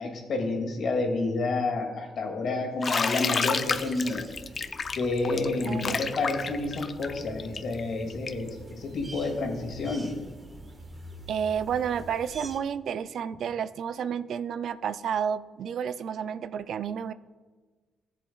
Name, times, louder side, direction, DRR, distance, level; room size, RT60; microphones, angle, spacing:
voice 1, 0.0-4.3 4.7-10.1, left 3 dB, 65° left, 1 dB, 2.2 m, -29 dB
Bathtub (filling or washing), 2.8-8.5, left 5 dB, 45° left, 0.5 m, -30 dB
sound 1, 3.6-12.6, right 1 dB, 35° right, 1.4 m, -46 dB
voice 2, 5.6-6.0 11.3-17.1, right 8 dB, 70° right, 15 dB, 0.3 m, -31 dB
14.5 x 7.4 x 2.3 m, 1.4 s
supercardioid pair, 65°, 0 cm